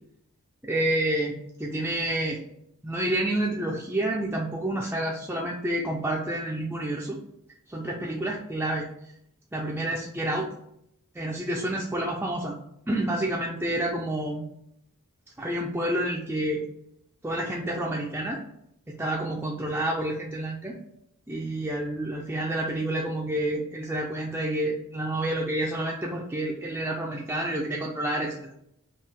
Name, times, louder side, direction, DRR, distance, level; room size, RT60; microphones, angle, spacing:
voice 1, 0.6-2.4 2.8-7.2 7.7-8.9 9.5-10.5 11.1-12.6 12.9-14.4 15.4-16.6 17.2-18.4 18.9-20.8 21.3-28.5, right 1 dB, 10° right, -3 dB, 0.4 m, -29 dB
3.6 x 2.7 x 4.2 m, 0.75 s
head